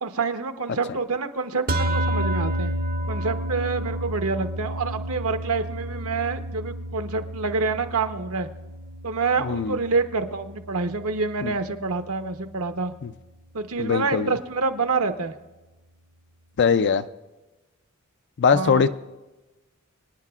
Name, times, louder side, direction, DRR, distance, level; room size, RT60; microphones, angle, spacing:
voice 1, 0.0-2.7 3.1-8.5 9.0-12.9 13.5-15.3 18.5-18.9, right 4 dB, 70° right, 7 dB, 1.0 m, -27 dB
sound 1, 1.7-12.1, right 1 dB, 45° right, 0.7 m, -31 dB
voice 2, 9.4-9.8 11.4-11.5 13.0-13.1 13.8-14.3 16.6-17.0 18.4-18.9, left 6 dB, 55° left, 12 dB, 0.4 m, -21 dB
25.0 x 9.7 x 2.4 m, 1.1 s
head